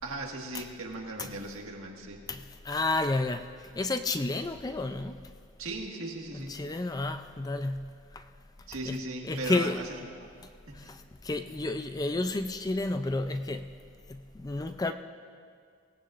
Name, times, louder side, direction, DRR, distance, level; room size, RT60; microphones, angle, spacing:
voice 1, 0.0-2.3 5.6-6.6 8.7-9.9 10.2-10.3 10.7-10.9, right 2 dB, 70° right, 1 dB, 1.8 m, -38 dB
voice 2, 2.3-5.3 6.3-8.3 8.9-9.0 9.2-9.8 10.4-13.8 14.1-14.9, left 2 dB, 15° left, 8 dB, 0.4 m, -31 dB
24.0 x 18.0 x 2.5 m, 2.2 s
head